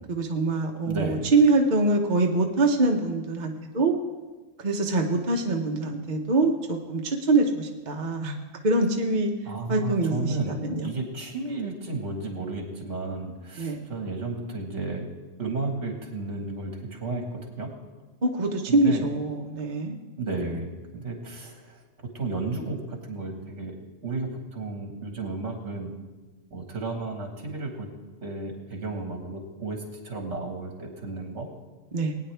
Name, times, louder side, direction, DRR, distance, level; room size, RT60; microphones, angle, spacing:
voice 1, 0.1-3.9 4.6-8.4 8.6-9.3 9.7-10.9 13.6-13.8 18.2-20.0 31.9-32.1, right 2 dB, 40° right, 2 dB, 0.9 m, -24 dB
voice 2, 0.8-1.2 9.5-15.1 15.4-17.7 18.7-19.0 20.2-21.8 22.1-23.8 24.0-25.9 26.5-27.9 28.2-31.5, right 3 dB, 65° right, 2 dB, 2.1 m, -33 dB
20.5 x 9.3 x 3.4 m, 1.3 s
omnidirectional pair, 1.3 m